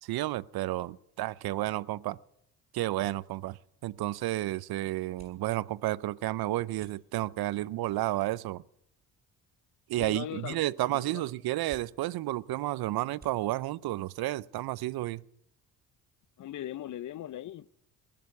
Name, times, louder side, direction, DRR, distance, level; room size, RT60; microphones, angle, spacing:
voice 1, 0.0-2.2 2.7-8.6 9.9-15.2, right 16 dB, 65° right, 0.7 m, -31 dB
sound 1, 3.7-15.3, right 3 dB, 25° right, 6.3 m, -61 dB
voice 2, 10.0-10.6 10.9-11.2 16.4-17.7, left 12 dB, 50° left, 0.7 m, -39 dB
20.0 x 6.9 x 9.5 m
cardioid pair, 95°, 40 cm